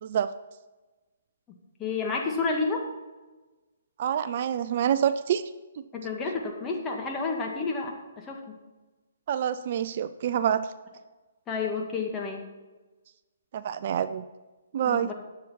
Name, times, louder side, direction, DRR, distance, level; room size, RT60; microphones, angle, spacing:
voice 1, 1.8-2.9 5.9-8.6 11.5-12.5 14.9-15.1, left 4 dB, 20° left, 1 dB, 1.8 m, -30 dB
voice 2, 4.0-5.4 9.3-10.7 13.5-14.2 14.7-15.1, right 9 dB, 50° right, 13 dB, 0.4 m, -26 dB
10.5 x 7.8 x 4.4 m, 1.2 s
hypercardioid pair, 140°, 0 cm